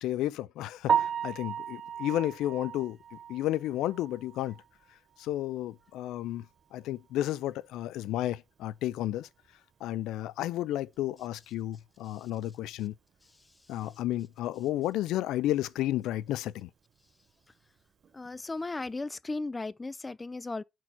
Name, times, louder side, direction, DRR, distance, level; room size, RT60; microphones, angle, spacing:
voice 1, 0.0-4.5 5.2-6.5 6.7-9.3 9.8-12.9 13.7-16.7, left 14 dB, 90° left, 0.3 m, -32 dB
Piano, 0.9-4.8 5.2-5.3 5.8-5.9 6.3-6.4 9.5-9.6 18.0-18.3, right 8 dB, 55° right, 0.6 m, -33 dB
voice 2, 18.1-20.6, left 3 dB, 20° left, 0.4 m, -36 dB
5.5 x 4.5 x 5.9 m
cardioid pair, 90°, 0 cm